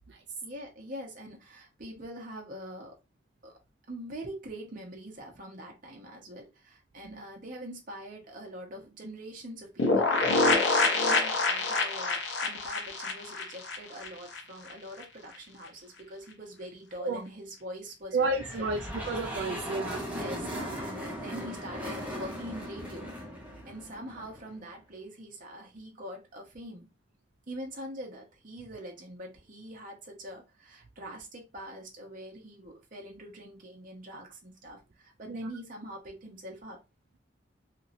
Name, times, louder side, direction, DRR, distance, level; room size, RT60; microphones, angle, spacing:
voice 1, 0.4-3.0 3.4-3.5 3.9-18.8 20.1-23.1 23.7-26.9 27.5-36.8, equal, 50° right, 0.9 m, -44 dB
sound 1, 9.8-14.4 14.7-14.8 15.0-15.1, left 3 dB, 75° left, 0.7 m, -26 dB
voice 2, 18.1-20.1 35.3-35.5, right 3 dB, 65° right, 0.4 m, -31 dB
sound 2, 18.2-24.6, equal, 10° right, 0.8 m, -38 dB
2.9 x 2.8 x 2.6 m
head